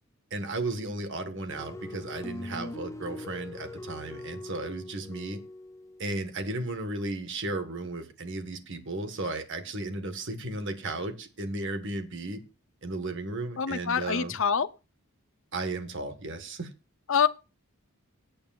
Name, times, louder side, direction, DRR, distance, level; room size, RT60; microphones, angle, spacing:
voice 1, 0.3-5.4 6.0-12.4 12.8-14.4 15.5-16.7, right 2 dB, 55° right, 1.7 m, -34 dB
sound 1, 1.5-6.1, left 2 dB, 15° left, 0.6 m, -41 dB
voice 2, 13.6-14.7 17.1-17.3, left 7 dB, 60° left, 0.8 m, -25 dB
22.5 x 8.6 x 2.5 m
head